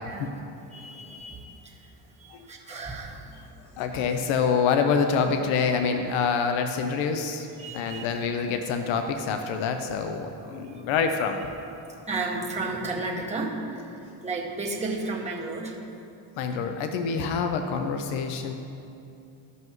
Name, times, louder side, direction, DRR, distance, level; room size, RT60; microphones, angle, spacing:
voice 1, 0.7-1.9 2.2-3.8 7.5-8.1 9.7-10.1 10.4-10.9 11.9-15.8 17.1-17.3, right 3 dB, 15° right, -4 dB, 1.8 m, -34 dB
voice 2, 3.8-7.5 7.7-11.4 16.4-18.5, left 5 dB, 70° left, 6 dB, 0.7 m, -26 dB
15.0 x 5.5 x 3.1 m, 2.7 s
supercardioid pair, 90°, 50 cm